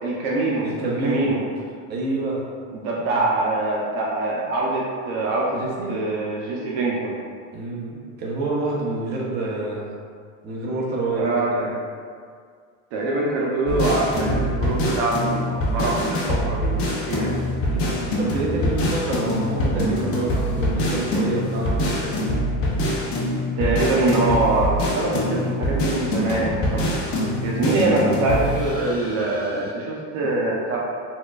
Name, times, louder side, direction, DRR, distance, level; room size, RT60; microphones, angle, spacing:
voice 1, 0.0-1.4 2.7-5.6 5.9-7.1 11.2-11.8 12.9-17.3 23.6-26.8 27.4-30.8, right 2 dB, 60° right, -3 dB, 0.7 m, -24 dB
voice 2, 0.6-1.4 1.9-2.4 3.0-3.2 5.5-6.0 7.5-10.0 10.4-11.7 17.7-22.2 30.2-30.3, right 2 dB, 25° right, -5 dB, 0.7 m, -28 dB
sound 1, 13.7-29.7, left 1 dB, 35° left, 0.7 m, -24 dB
4.3 x 2.4 x 2.3 m, 2.1 s
supercardioid pair, 125°, 38 cm